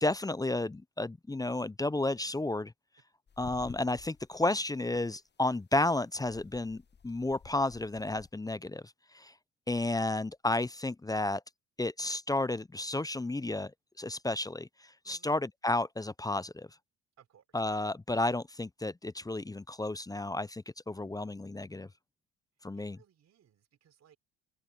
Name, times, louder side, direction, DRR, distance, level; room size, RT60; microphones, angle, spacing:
voice 1, 0.0-2.7 3.4-9.3 9.7-11.4 11.8-13.7 14.0-14.7 15.1-16.7 17.5-21.9 22.6-23.0, left 2 dB, 10° left, 0.7 m, -32 dB
sound 1, 3.3-4.5 5.0-5.2 6.2-8.3, left 6 dB, 30° left, 1.3 m, -53 dB
voice 2, 17.2-17.7 22.7-24.2, right 9 dB, 50° right, 4.6 m, -64 dB
open air
hypercardioid pair, 60°, 33 cm